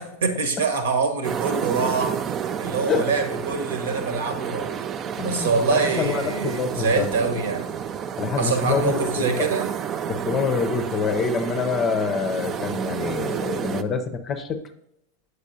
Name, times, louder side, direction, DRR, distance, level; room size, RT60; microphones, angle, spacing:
voice 1, 0.0-4.8 5.2-7.7 8.4-9.7, right 4 dB, 60° right, 7 dB, 1.1 m, -25 dB
sound 1, 1.2-13.8, right 8 dB, 30° right, 0.4 m, -30 dB
voice 2, 5.2-7.1 8.2-9.3 10.1-14.6, left 5 dB, 25° left, 10 dB, 0.6 m, -26 dB
8.2 x 8.0 x 2.7 m, 0.79 s
figure-of-eight pair, 90°, 0 cm